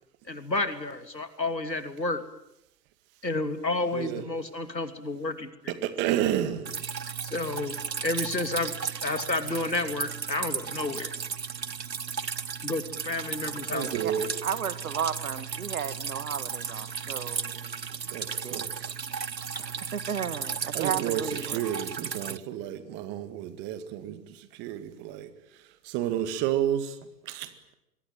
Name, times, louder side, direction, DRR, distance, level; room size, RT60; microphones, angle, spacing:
voice 1, 0.3-2.2 3.2-5.7 7.2-7.8 8.0-11.1 12.6-13.9, left 2 dB, 90° left, 9 dB, 3.1 m, -31 dB
voice 2, 3.9-4.2 5.7-6.7 13.7-14.3 18.1-18.9 20.8-25.3 25.8-27.0 27.2-27.5, right 11 dB, 20° right, 11 dB, 2.0 m, -31 dB
Drip, 6.6-22.4, right 6 dB, 85° right, 1.1 m, -35 dB
voice 3, 14.0-17.9 18.4-18.9 19.6-21.8, right 8 dB, 55° right, 14 dB, 2.0 m, -34 dB
26.0 x 23.0 x 9.2 m, 0.86 s
figure-of-eight pair, 130°, 49 cm